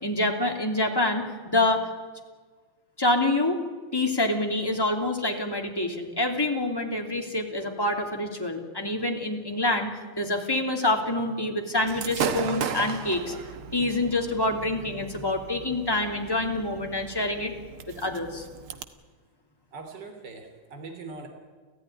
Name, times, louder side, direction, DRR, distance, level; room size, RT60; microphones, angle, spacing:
voice 1, 0.0-1.8 3.0-3.6 3.9-17.5 18.0-18.4, left 2 dB, 10° left, 2 dB, 2.8 m, -26 dB
Gunshot gunfire / Fireworks, 11.9-18.8, right 8 dB, 80° right, 2.1 m, -36 dB
voice 2, 19.7-21.3, right 4 dB, 50° right, 5 dB, 3.5 m, -41 dB
29.5 x 15.0 x 9.9 m, 1.4 s
omnidirectional pair, 2.4 m